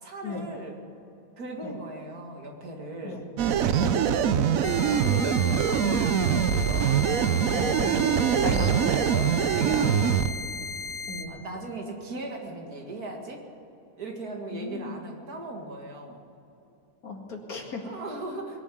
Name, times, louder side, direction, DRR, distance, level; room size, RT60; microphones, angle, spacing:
voice 1, 0.0-0.7 1.4-3.3 4.3-7.6 8.3-10.3 11.3-13.4 14.0-16.2 17.8-18.6, right 2 dB, 90° right, 1 dB, 2.6 m, -38 dB
sound 1, 3.4-10.3, right 8 dB, 70° right, 1.1 m, -23 dB
voice 2, 3.8-4.4 7.5-8.0 8.4-8.8 10.2-10.4 11.1-11.3 14.5-15.0 17.0-17.8, left 3 dB, 75° left, 1 dB, 2.6 m, -36 dB
sound 2, 4.6-11.2, left 4 dB, 55° left, 1.3 m, -36 dB
21.5 x 7.3 x 9.2 m, 2.9 s
omnidirectional pair, 1.6 m